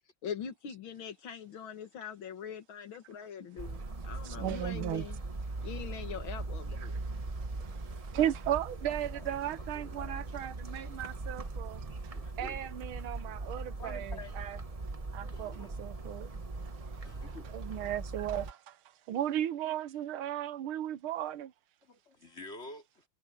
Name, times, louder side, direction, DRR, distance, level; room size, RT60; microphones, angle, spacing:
voice 1, 0.2-5.2 5.6-7.0, left 8 dB, 70° left, 2.4 m, -42 dB
sound 1, 3.6-18.5, right 3 dB, 25° right, 0.8 m, -40 dB
voice 2, 4.2-5.1 5.6-5.7 6.8-14.6 15.1-16.4 16.7-21.5, right 11 dB, 85° right, 1.7 m, -36 dB
voice 3, 8.9-10.4 12.1-12.7 13.4-14.3 15.2-16.3 17.0-17.5 19.1-19.4 21.8-23.0, left 2 dB, 30° left, 4.1 m, -51 dB
omnidirectional pair, 2.3 m